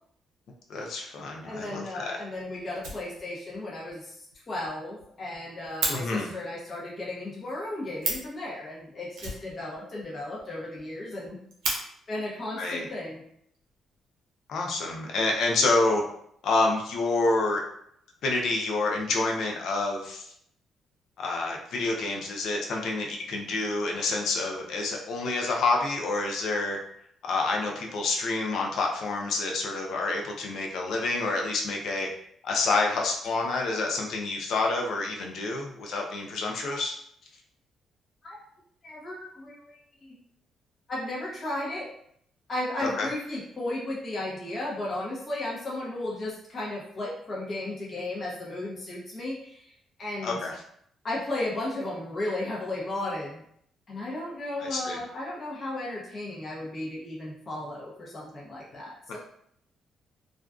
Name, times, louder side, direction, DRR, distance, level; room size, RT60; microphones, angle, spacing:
voice 1, 0.7-2.2 5.9-6.3 12.6-12.9 14.5-16.0 16.4-17.6 18.2-20.3 21.2-26.8 27.2-32.1 32.4-36.9 43.0-43.1 50.2-50.5 54.6-55.0, left 3 dB, 70° left, 1 dB, 0.5 m, -28 dB
voice 2, 1.4-11.4 12.1-13.2 36.7-36.8 38.2-38.4 38.8-40.1 40.9-41.9 42.5-49.7 50.0-50.4 51.0-53.4 53.9-59.2, left 1 dB, 35° left, -5 dB, 0.8 m, -35 dB
Fire, 2.7-3.6 3.9-4.0 4.3-4.4 4.6-4.7 5.0-6.0 7.7-7.8 8.0-8.4 9.1-10.1 10.4-10.5 10.8-10.9 11.2-11.8 12.8-12.9 13.5-14.1, right 3 dB, 90° right, 0.6 m, -33 dB
2.4 x 2.2 x 2.3 m, 0.70 s
cardioid pair, 90°, 0 cm